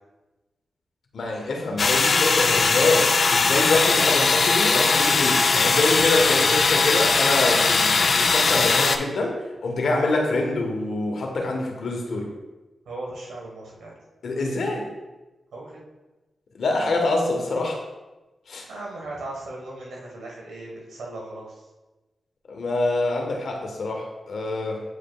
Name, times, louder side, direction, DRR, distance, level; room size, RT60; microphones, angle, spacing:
voice 1, 1.1-12.3 14.2-14.9 16.6-17.8 18.5-18.7 22.5-24.8, left 2 dB, 75° left, 1 dB, 1.1 m, -25 dB
sound 1, 1.8-9.0, left 4 dB, 60° left, 0.5 m, -20 dB
voice 2, 12.8-13.9 15.5-15.8 18.7-21.6, right 2 dB, 90° right, -2 dB, 1.3 m, -37 dB
8.3 x 5.0 x 2.3 m, 1.1 s
cardioid pair, 45°, 0 cm